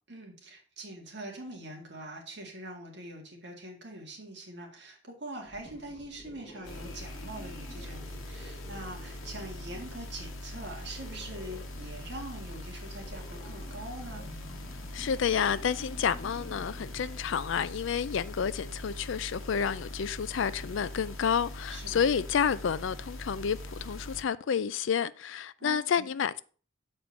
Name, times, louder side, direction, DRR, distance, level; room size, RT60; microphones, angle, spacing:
voice 1, 0.1-14.3 21.7-22.1 25.6-26.1, right 1 dB, 55° right, 1.9 m, -43 dB
sound 1, 5.4-17.9, equal, 20° left, 1.6 m, -50 dB
sound 2, 6.6-24.2, left 1 dB, 85° left, 1.2 m, -42 dB
voice 2, 14.9-26.4, left 7 dB, 65° left, 0.4 m, -30 dB
7.2 x 4.4 x 5.2 m
head